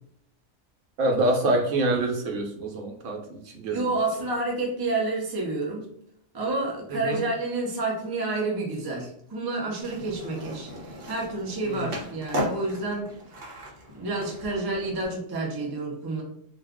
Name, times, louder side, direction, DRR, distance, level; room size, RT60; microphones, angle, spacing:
voice 1, 1.0-4.0 6.9-7.2 11.6-12.0, right 2 dB, 85° right, 1 dB, 1.1 m, -26 dB
voice 2, 3.7-5.8 6.3-13.1 13.9-16.2, right 2 dB, 25° right, -1 dB, 0.5 m, -29 dB
Skateboard, 9.8-15.1, equal, 55° right, 0.9 m, -36 dB
2.4 x 2.4 x 3.5 m, 0.69 s
omnidirectional pair, 1.2 m